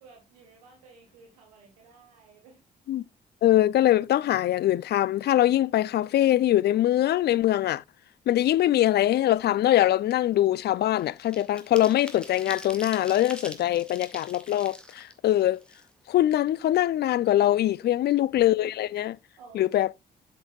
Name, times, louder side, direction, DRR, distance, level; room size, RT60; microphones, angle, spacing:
voice 1, 0.0-2.6 19.4-19.9, right 4 dB, 90° right, 1.4 m, -54 dB
voice 2, 3.4-7.8 8.3-15.6 16.1-19.2 19.5-19.9, left 13 dB, 55° left, 0.4 m, -23 dB
sound 1, 9.3-9.5 9.8-16.3 16.6-16.7 17.1-18.0 18.3-18.5 18.8-19.1, equal, 5° left, 2.0 m, -45 dB
7.6 x 7.3 x 2.3 m
hypercardioid pair, 45°, 20 cm